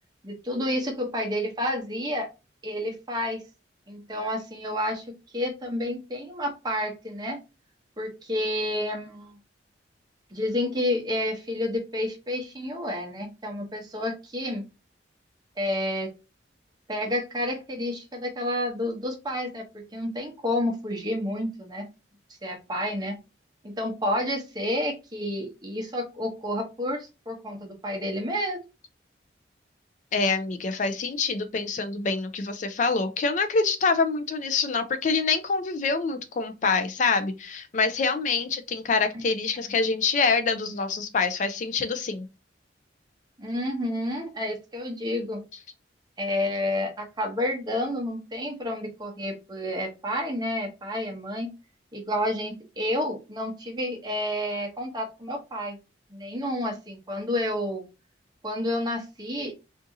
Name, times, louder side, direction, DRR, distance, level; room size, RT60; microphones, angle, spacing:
voice 1, 0.2-2.3 2.6-3.5 3.9-7.4 8.0-9.4 10.3-14.6 15.6-16.1 16.9-21.9 22.4-23.2 23.6-28.6 39.1-39.2 43.4-45.4 46.2-51.5 51.9-55.8 56.1-57.8 58.4-59.5, left 1 dB, 20° right, 1 dB, 0.8 m, -30 dB
voice 2, 30.1-42.3, left 4 dB, 40° left, 8 dB, 0.3 m, -26 dB
3.6 x 2.6 x 2.6 m, 0.27 s
head